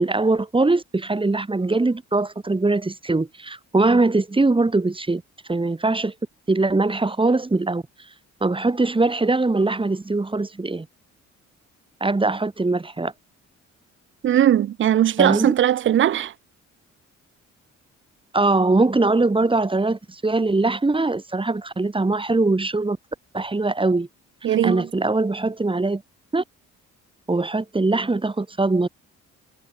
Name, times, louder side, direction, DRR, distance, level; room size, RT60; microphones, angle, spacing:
voice 1, 0.0-5.2 5.5-6.1 6.5-7.8 8.4-10.9 12.0-13.1 15.2-15.5 18.3-23.0 23.3-24.1 24.6-26.0 26.3-26.4 27.3-28.9, right 3 dB, 15° right, 2.2 m, -21 dB
voice 2, 14.2-16.3 24.4-24.9, right 11 dB, 40° right, 0.5 m, -19 dB
cardioid pair, 90°, 30 cm